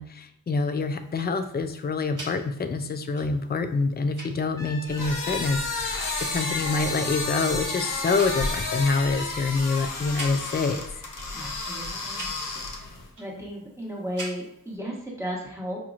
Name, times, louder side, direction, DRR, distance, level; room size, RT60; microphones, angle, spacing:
voice 1, 0.0-10.8, left 4 dB, 30° left, 9 dB, 0.3 m, -26 dB
Tick-tock, 0.7-14.8, right 1 dB, 65° right, 1.3 m, -46 dB
Brass instrument, 4.6-9.4, right 1 dB, 10° left, 0.8 m, -43 dB
sound 1, 4.9-13.1, left 3 dB, 70° left, 0.8 m, -31 dB
voice 2, 11.3-12.3 13.2-15.8, equal, 10° right, -3 dB, 1.1 m, -34 dB
4.9 x 2.9 x 2.4 m, 0.76 s
wide cardioid pair, 75°, 34 cm